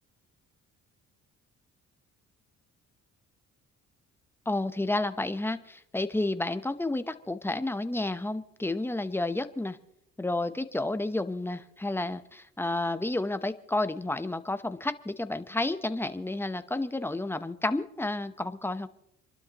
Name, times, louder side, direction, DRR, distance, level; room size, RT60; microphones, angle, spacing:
voice 1, 4.5-9.8 10.2-18.9, left 2 dB, 5° left, 11 dB, 0.8 m, -31 dB
29.0 x 12.0 x 3.0 m, 0.76 s
cardioid pair, 90°, 30 cm